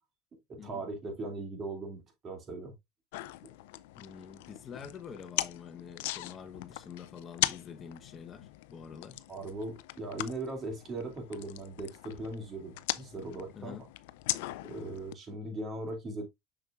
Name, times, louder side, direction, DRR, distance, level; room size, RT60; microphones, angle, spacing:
voice 1, 0.5-2.7 9.3-13.8 14.6-16.2, right 2 dB, 30° right, 2.5 m, -39 dB
sound 1, 3.1-15.1, left 17 dB, 80° left, 0.4 m, -39 dB
voice 2, 4.0-9.2 13.5-13.9, left 7 dB, 30° left, 1.0 m, -46 dB
6.4 x 6.1 x 2.4 m
supercardioid pair, 140°, 0 cm